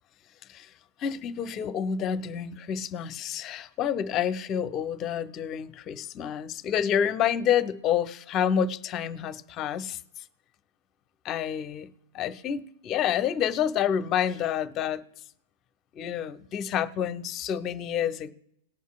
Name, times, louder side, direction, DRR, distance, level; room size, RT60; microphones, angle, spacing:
voice 1, 1.0-10.0 11.2-11.9 12.1-15.0 16.0-18.3, left 8 dB, 35° left, 0.9 m, -28 dB
19.0 x 8.2 x 2.4 m
hypercardioid pair, 105°, 0 cm